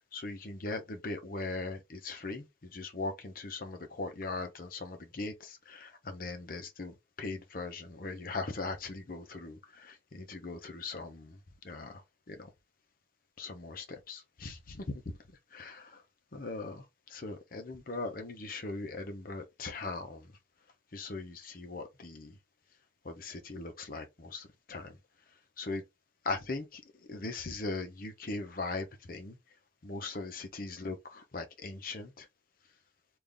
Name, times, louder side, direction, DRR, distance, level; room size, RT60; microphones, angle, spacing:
voice 1, 0.1-11.4 11.6-12.0 12.3-12.5 13.4-15.2 15.5-16.0 16.3-20.4 20.9-22.4 23.0-25.0 25.6-25.8 26.2-26.8 27.1-29.4 29.8-32.3, left 3 dB, 45° left, 0.7 m, -40 dB
3.5 x 2.5 x 3.7 m
head